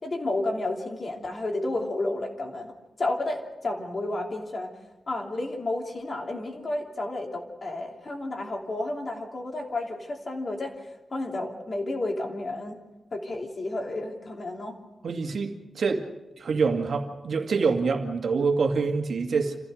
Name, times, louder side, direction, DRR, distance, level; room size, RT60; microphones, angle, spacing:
voice 1, 0.0-4.7 5.1-10.8 11.1-12.8 13.1-14.8, left 2 dB, 40° left, 2 dB, 3.0 m, -31 dB
voice 2, 15.0-16.1 16.4-19.6, right 4 dB, 65° right, 4 dB, 2.2 m, -26 dB
27.5 x 15.5 x 6.5 m, 1.1 s
wide cardioid pair, 165°, 0 cm